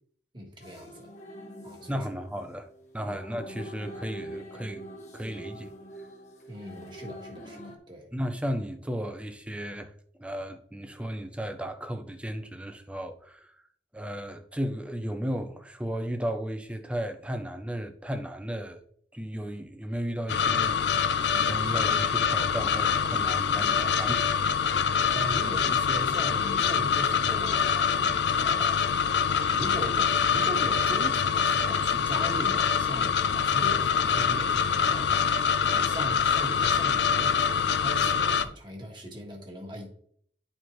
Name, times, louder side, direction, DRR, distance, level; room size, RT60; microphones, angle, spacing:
voice 1, 0.3-1.1 1.6-2.1 3.0-3.1 6.5-8.1 25.1-28.8 29.5-39.9, right 1 dB, 25° right, 1.4 m, -39 dB
sound 1, 0.6-7.8, equal, 40° left, 1.1 m, -44 dB
voice 2, 1.9-2.7 2.9-4.8 5.1-6.1 8.1-9.9 10.2-13.6 13.9-18.9 19.1-20.9 21.2-25.2, equal, 5° right, 0.6 m, -35 dB
sound 2, 20.3-38.5, left 7 dB, 80° left, 0.4 m, -25 dB
11.0 x 4.3 x 3.1 m
head